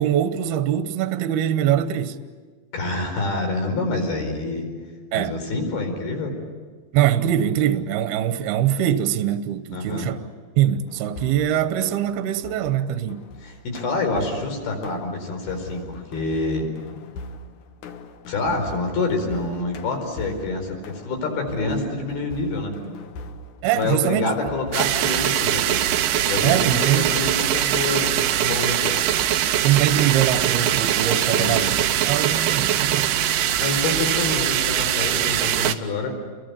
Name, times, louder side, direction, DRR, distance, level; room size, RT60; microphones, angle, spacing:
voice 1, 0.0-2.2 5.1-5.4 6.9-10.2 10.6-13.2 23.6-24.5 26.4-27.1 29.6-31.8 32.1-33.2, right 11 dB, 70° right, 2.7 m, -22 dB
voice 2, 2.7-4.7 5.1-6.3 9.7-10.1 13.4-16.6 18.3-22.8 23.7-25.8 26.2-29.0 31.3-31.6 33.6-36.2, left 3 dB, 55° left, 6.4 m, -27 dB
sound 1, 10.9-24.9, left 3 dB, 75° left, 1.9 m, -41 dB
sound 2, 24.7-35.7, right 11 dB, 85° right, 1.9 m, -22 dB
30.0 x 23.0 x 8.4 m
omnidirectional pair, 5.4 m